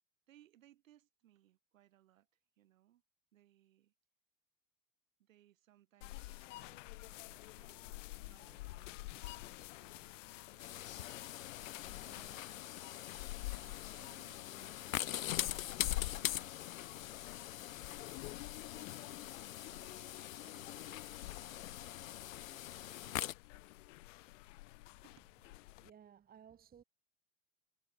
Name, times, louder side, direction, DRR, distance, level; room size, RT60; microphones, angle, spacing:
voice 1, 0.3-2.3 2.6-3.0 3.3-3.9 5.2-7.9 8.2-10.8 12.0-12.7 13.4-15.2 15.9-18.1 18.5-23.1 25.0-25.2, right 13 dB, 75° right, 7.8 m, -68 dB
sound 1, 6.0-25.9, left 19 dB, 65° left, 1.3 m, -49 dB
sound 2, 10.6-23.3, left 13 dB, 85° left, 0.7 m, -43 dB
voice 2, 25.8-26.8, right 8 dB, 25° right, 1.3 m, -58 dB
hypercardioid pair, 95°, 39 cm